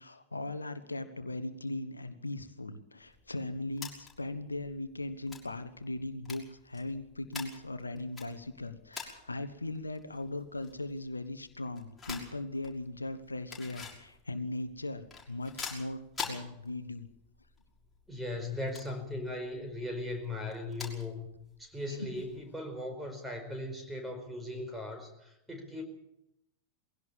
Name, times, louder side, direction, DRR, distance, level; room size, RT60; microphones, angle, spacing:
voice 1, 0.0-17.1 22.0-22.1, left 2 dB, 80° left, 11 dB, 1.2 m, -39 dB
sound 1, 3.0-22.5, left 5 dB, 15° left, 6.0 m, -48 dB
voice 2, 18.1-21.3 21.6-25.8, left 2 dB, 5° right, 5 dB, 4.9 m, -38 dB
21.5 x 17.0 x 7.2 m, 0.82 s
figure-of-eight pair, 90°, 0 cm